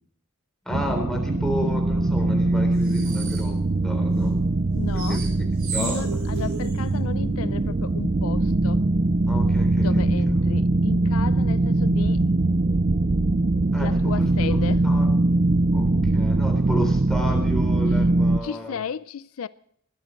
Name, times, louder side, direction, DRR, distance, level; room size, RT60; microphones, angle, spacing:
voice 1, 0.7-4.4 4.9-5.3 5.7-6.3 9.3-10.2 13.7-14.6 14.8-15.1 15.7-18.8, equal, ahead, 3.5 m, -32 dB
sound 1, 0.7-18.4, right 2 dB, 35° right, 0.4 m, -22 dB
sound 2, 2.8-3.5 5.0-6.8, right 4 dB, 75° right, 6.1 m, -34 dB
voice 2, 4.7-5.2 5.7-8.8 9.8-12.6 13.8-14.8 18.4-19.5, left 6 dB, 75° left, 0.4 m, -34 dB
21.0 x 13.0 x 3.1 m
head